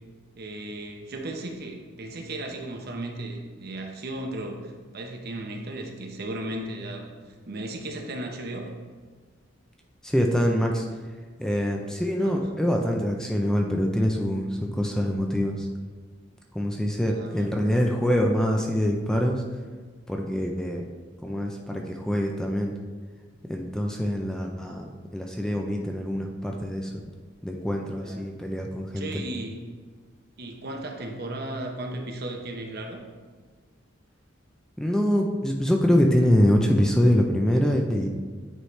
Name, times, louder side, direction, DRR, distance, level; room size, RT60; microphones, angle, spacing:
voice 1, 0.4-8.7 12.2-12.4 17.1-17.5 28.0-28.3 29.0-29.6 30.4-33.0, right 1 dB, 55° right, 2 dB, 0.8 m, -35 dB
voice 2, 10.0-10.9 11.4-15.7 16.5-19.4 20.1-20.8 21.2-22.8 23.5-24.9 25.1-27.0 27.4-29.2 34.8-38.1, equal, 5° left, 1 dB, 0.5 m, -24 dB
9.1 x 4.8 x 3.2 m, 1.5 s
head